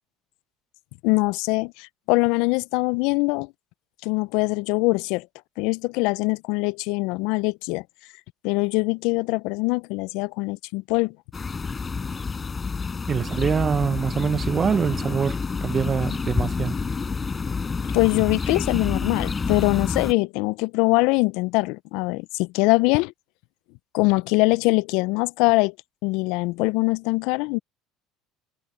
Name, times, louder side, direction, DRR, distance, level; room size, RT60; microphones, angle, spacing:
voice 1, 1.0-3.5 4.0-5.3 5.6-7.8 8.4-11.2 17.9-23.1 23.9-25.7 26.0-27.6, left 25 dB, 70° left, 0.5 m, -23 dB
sound 1, 11.3-20.1, left 4 dB, 25° left, 6.4 m, -28 dB
voice 2, 13.1-16.8, right 6 dB, 35° right, 0.8 m, -24 dB
supercardioid pair, 85°, 0 cm